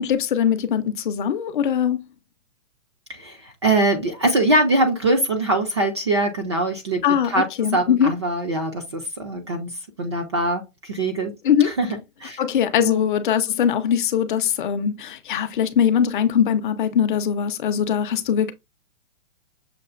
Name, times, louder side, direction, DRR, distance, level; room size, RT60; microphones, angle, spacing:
voice 1, 0.0-2.1 7.0-8.1 11.4-11.7 12.4-18.5, left 8 dB, 40° left, 0.5 m, -21 dB
voice 2, 3.1-11.3 11.6-12.4 12.8-13.0, right 2 dB, 25° right, 0.4 m, -23 dB
6.6 x 2.4 x 2.4 m
hypercardioid pair, 160°, 38 cm